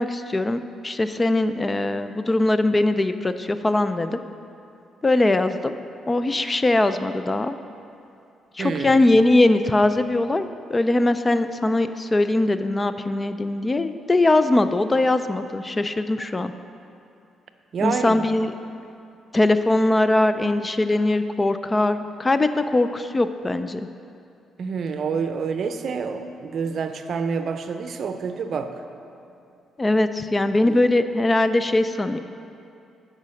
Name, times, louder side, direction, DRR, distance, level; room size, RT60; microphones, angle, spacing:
voice 1, 0.0-4.2 5.0-5.7 6.1-7.5 8.6-16.5 17.8-18.5 19.3-23.9 29.8-32.2, left 2 dB, 20° left, 10 dB, 0.4 m, -21 dB
voice 2, 8.6-9.0 17.7-18.3 24.6-28.7 30.6-30.8, right 5 dB, 55° right, 8 dB, 0.6 m, -28 dB
9.6 x 5.0 x 6.3 m, 2.6 s
cardioid pair, 90°, 0 cm